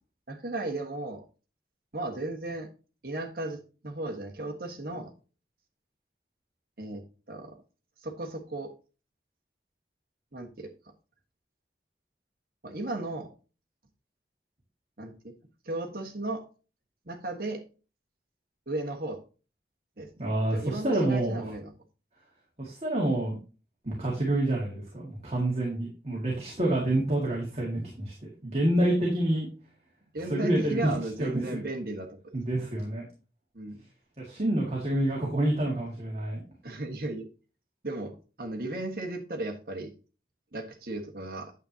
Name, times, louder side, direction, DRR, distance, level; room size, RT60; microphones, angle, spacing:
voice 1, 0.3-1.2 1.9-2.7 3.0-5.1 6.8-7.6 8.0-8.7 10.3-10.7 12.6-13.3 15.0-15.3 15.6-16.4 17.1-17.6 18.7-19.2 20.0-20.1 20.5-21.7 30.1-32.3 33.5-33.8 36.6-37.3 37.8-39.9 40.5-41.5, right 2 dB, 55° right, 3 dB, 1.4 m, -35 dB
voice 2, 20.2-21.5 22.6-23.4 23.8-29.5 30.3-30.9 31.2-31.6 32.3-33.0 34.2-36.4, right 1 dB, 35° right, -3 dB, 1.9 m, -28 dB
9.0 x 7.5 x 2.8 m, 0.34 s
head